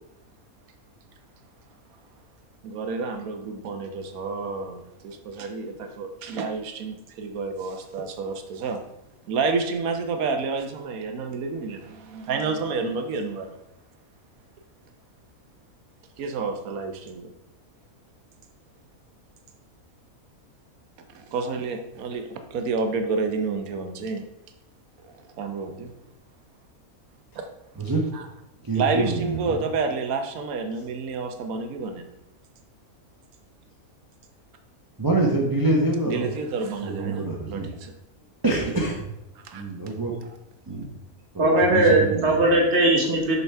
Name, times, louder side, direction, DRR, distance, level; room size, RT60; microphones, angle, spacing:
voice 1, 2.6-8.8 9.3-13.6 16.2-17.3 21.1-24.2 25.0-25.9 27.4-27.5 28.1-28.3 28.7-32.1 36.0-37.9 39.4-39.6, right 4 dB, 75° right, 6 dB, 1.3 m, -29 dB
voice 2, 28.7-29.6 35.0-36.3 36.8-37.7 38.4-39.0 39.5-40.1 40.7-40.8 41.3-42.3, right 2 dB, 20° right, -2 dB, 0.7 m, -25 dB
voice 3, 41.4-43.4, right 2 dB, 50° right, 0 dB, 1.5 m, -19 dB
6.8 x 5.9 x 3.4 m, 0.87 s
omnidirectional pair, 1.5 m